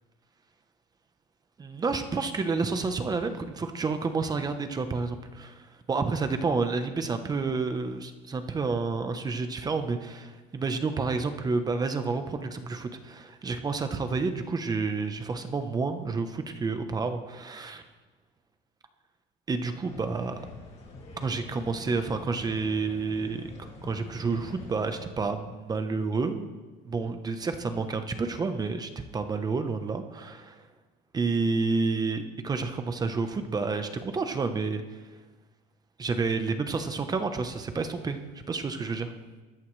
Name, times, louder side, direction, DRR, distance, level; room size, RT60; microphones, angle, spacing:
voice 1, 1.6-17.8 19.5-20.4 21.2-26.5 26.8-30.6 31.1-34.8 36.0-39.1, right 4 dB, 20° right, 8 dB, 0.9 m, -30 dB
sound 1, 19.8-25.0, left 2 dB, 30° left, 2.7 m, -45 dB
23.5 x 13.5 x 3.3 m, 1.3 s
cardioid pair, 155°, 20 cm